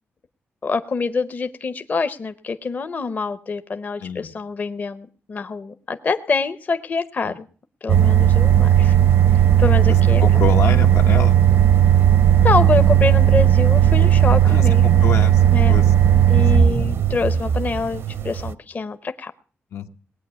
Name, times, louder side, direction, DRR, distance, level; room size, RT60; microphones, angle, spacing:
voice 1, 0.6-7.5 7.8-9.1 9.6-10.2 12.4-14.9 15.5-15.8 16.3-19.3, left 4 dB, 40° left, 10 dB, 0.7 m, -25 dB
voice 2, 4.0-4.3 10.2-11.4 14.4-15.4 15.7-15.8 16.5-17.0 19.7-19.9, left 6 dB, 85° left, 5 dB, 1.3 m, -27 dB
sound 1, 7.9-18.5, right 10 dB, 65° right, 0.6 m, -15 dB
19.5 x 8.9 x 6.9 m, 0.43 s
wide cardioid pair, 155°, 4 cm